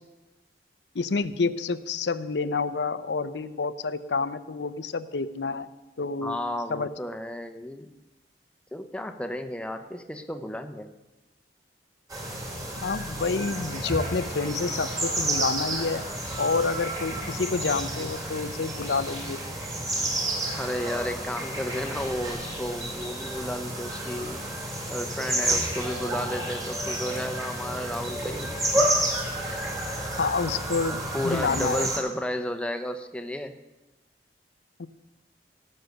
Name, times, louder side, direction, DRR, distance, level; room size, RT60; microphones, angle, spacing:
voice 1, 0.9-5.7 6.0-6.4 6.7-6.9 12.8-16.0 16.4-19.4 30.2-31.9 34.8-34.9, left 4 dB, 80° left, 13 dB, 0.6 m, -28 dB
voice 2, 6.2-7.9 8.7-10.9 20.5-24.4 24.9-28.9 29.5-29.6 31.1-33.6, left 1 dB, 5° left, 7 dB, 0.7 m, -33 dB
sound 1, 12.1-32.0, right 1 dB, 20° right, 2.3 m, -30 dB
17.5 x 6.5 x 6.5 m, 1.1 s
head